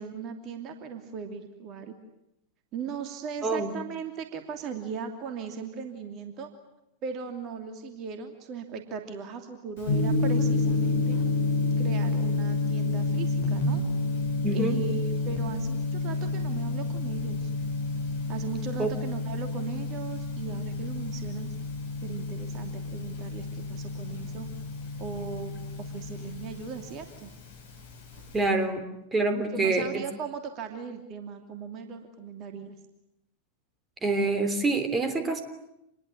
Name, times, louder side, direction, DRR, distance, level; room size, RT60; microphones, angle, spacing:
voice 1, 0.0-1.9 2.7-6.5 7.0-11.2 11.8-13.8 14.5-17.5 18.3-21.5 22.0-24.5 25.0-27.3 29.3-32.8, right 6 dB, 35° right, 6 dB, 2.8 m, -38 dB
voice 2, 3.4-3.7 14.4-14.8 18.8-18.9 28.3-28.8 29.1-30.0 34.0-35.4, right 2 dB, 15° right, 8 dB, 3.3 m, -26 dB
Gong, 9.8-28.4, left 3 dB, 60° left, 7.5 m, -29 dB
28.0 x 21.5 x 9.9 m, 0.83 s
figure-of-eight pair, 90°, 0 cm